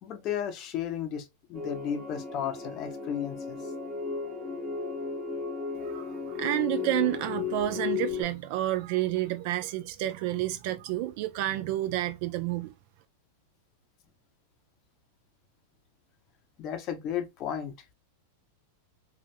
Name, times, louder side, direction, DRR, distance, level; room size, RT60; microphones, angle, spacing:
voice 1, 0.0-3.6 16.6-17.7, left 9 dB, 35° left, 0.6 m, -34 dB
sound 1, 1.5-8.2, left 5 dB, 20° right, 1.7 m, -35 dB
voice 2, 5.8-12.7, right 14 dB, 50° right, 0.4 m, -30 dB
3.2 x 2.4 x 2.6 m
supercardioid pair, 145°, 0 cm